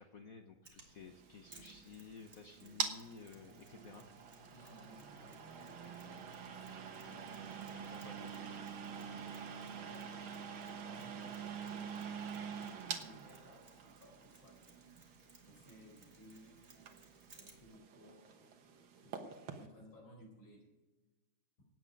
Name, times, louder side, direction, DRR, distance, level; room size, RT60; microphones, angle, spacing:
voice 1, 0.0-4.1 7.7-8.3, left 5 dB, 55° left, 5 dB, 1.1 m, -54 dB
Mechanisms, 0.7-17.8, right 3 dB, 35° right, 2.2 m, -64 dB
sound 1, 1.0-19.7, right 7 dB, 90° right, 2.0 m, -46 dB
voice 2, 4.5-8.5 9.0-10.4 10.7-14.6 15.4-17.0 17.4-18.6 19.0-19.1 19.6-20.7, equal, 80° left, 0 dB, 5.1 m, -60 dB
Meow, 11.9-12.7, right 6 dB, 50° right, 0.7 m, -58 dB
16.0 x 9.3 x 5.2 m, 1.1 s
omnidirectional pair, 2.1 m